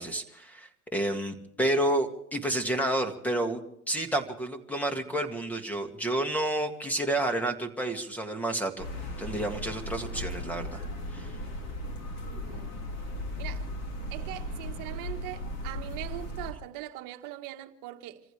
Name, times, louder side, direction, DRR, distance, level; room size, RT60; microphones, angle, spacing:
voice 1, 0.0-3.6 3.9-8.8 9.2-10.8 11.1-11.3, right 1 dB, 5° left, 1.9 m, -30 dB
sound 1, 8.8-16.5, left 1 dB, 35° left, 3.3 m, -37 dB
voice 2, 12.2-12.8 13.4-13.7 14.1-18.2, right 15 dB, 40° right, 1.7 m, -41 dB
28.0 x 15.0 x 3.4 m
supercardioid pair, 130°, 47 cm